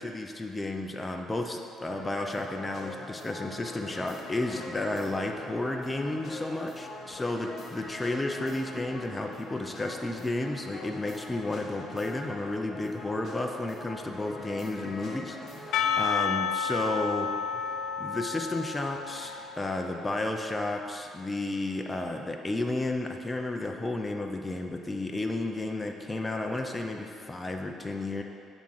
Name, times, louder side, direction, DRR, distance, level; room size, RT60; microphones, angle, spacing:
voice 1, 0.0-17.3 18.0-28.2, left 2 dB, 15° left, 3 dB, 0.4 m, -32 dB
sound 1, 1.9-15.9, left 2 dB, 35° left, 1.1 m, -43 dB
Percussion / Church bell, 15.7-20.7, left 6 dB, 80° left, 0.4 m, -31 dB
8.7 x 3.6 x 5.9 m, 2.6 s
cardioid pair, 140°, 0 cm